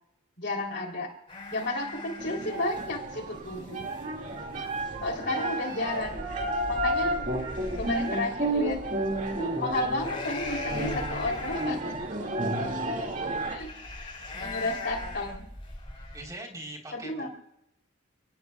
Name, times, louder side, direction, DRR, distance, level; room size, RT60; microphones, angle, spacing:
voice 1, 0.4-1.1 1.5-3.9 5.0-6.2 6.7-7.2 7.8-8.8 9.3-12.0 13.5-13.7 13.9-15.4 16.9-17.3, left 2 dB, 55° left, 1 dB, 3.3 m, -32 dB
sound 1, 1.3-16.3, left 2 dB, 25° left, 5.4 m, -40 dB
sound 2, 2.2-13.6, right 1 dB, 40° right, 2.1 m, -32 dB
voice 2, 14.3-14.7 16.1-17.3, right 1 dB, 15° right, 0 dB, 3.7 m, -43 dB
30.0 x 18.5 x 2.3 m, 0.80 s
head